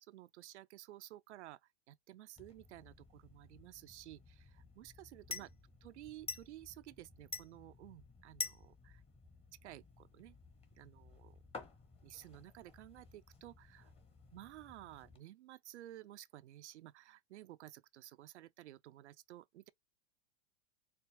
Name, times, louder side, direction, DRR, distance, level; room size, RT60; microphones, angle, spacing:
voice 1, 0.0-5.5 5.8-9.0 9.6-10.4 10.7-11.4 12.0-13.9 14.3-19.7, right 14 dB, 90° right, 0.5 m, -54 dB
sound 1, 2.4-15.2, left 4 dB, 20° left, 1.0 m, -51 dB
4.5 x 2.0 x 3.4 m
hypercardioid pair, 115°, 33 cm